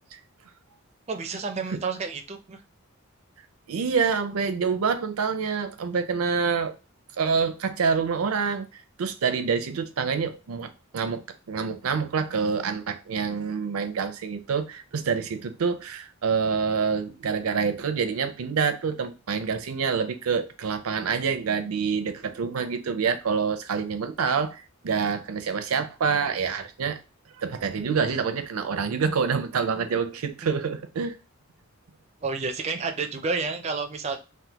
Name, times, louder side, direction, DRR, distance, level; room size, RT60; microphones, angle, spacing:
voice 1, 1.1-2.6 32.2-34.2, right 4 dB, 30° right, 0.4 m, -30 dB
voice 2, 3.7-6.7 7.2-8.7 9.0-27.0 27.4-31.2, right 5 dB, 85° right, 0.5 m, -27 dB
3.4 x 2.2 x 2.8 m
head